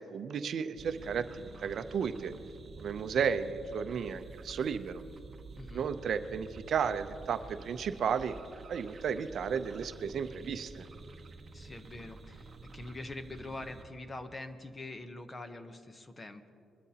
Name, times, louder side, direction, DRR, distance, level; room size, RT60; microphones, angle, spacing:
voice 1, 0.0-2.3 2.8-5.0 5.7-8.4 8.7-10.9, right 7 dB, 55° right, 10 dB, 0.6 m, -33 dB
sound 1, 0.7-13.8, right 3 dB, 35° right, 1.0 m, -49 dB
voice 2, 5.6-5.9 11.5-16.5, left 2 dB, 20° left, 8 dB, 0.8 m, -44 dB
22.0 x 12.5 x 2.9 m, 2.5 s
cardioid pair, 130°, 0 cm